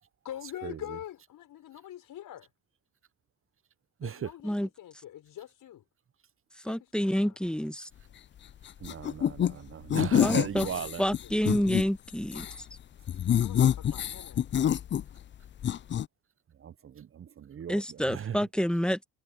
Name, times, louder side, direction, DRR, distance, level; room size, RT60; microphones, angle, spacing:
voice 1, 0.2-2.5 4.0-5.8 6.7-7.4 10.2-11.3 12.3-12.6 13.4-14.7, left 11 dB, 70° left, 5.9 m, -45 dB
voice 2, 6.5-7.9 10.2-10.7 11.0-12.4 17.7-19.0, equal, 5° left, 1.4 m, -28 dB
sound 1, 8.8-9.5 9.9-11.8 12.2-12.6 13.1-15.3 15.6-16.0, left 10 dB, 35° left, 0.4 m, -27 dB
voice 3, 8.8-11.0 16.6-18.4, right 8 dB, 40° right, 0.8 m, -37 dB
supercardioid pair, 60°, 35 cm